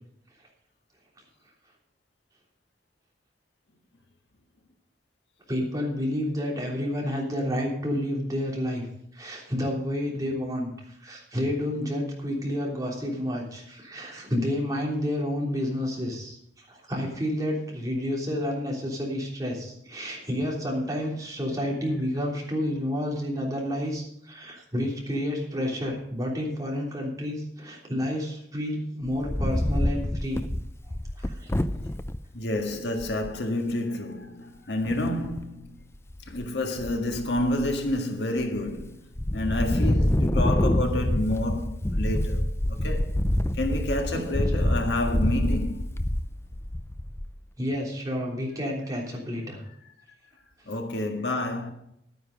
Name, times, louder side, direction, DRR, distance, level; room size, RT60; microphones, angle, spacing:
voice 1, 5.5-8.9 9.1-10.7 11.0-30.4 31.2-31.5 44.1-44.3 47.6-49.6, left 1 dB, 20° right, 3.3 m, -30 dB
Wind, 29.1-32.2 32.7-32.8 33.0-33.4 34.8-35.4 35.9-36.4 36.8-37.9 38.4-38.9 39.2-47.4, left 1 dB, 15° left, 0.5 m, -26 dB
voice 2, 32.3-35.8 36.3-39.0 39.3-43.1 43.5-46.0 50.6-51.7, left 1 dB, 75° left, 1.8 m, -29 dB
11.5 x 9.6 x 5.3 m
head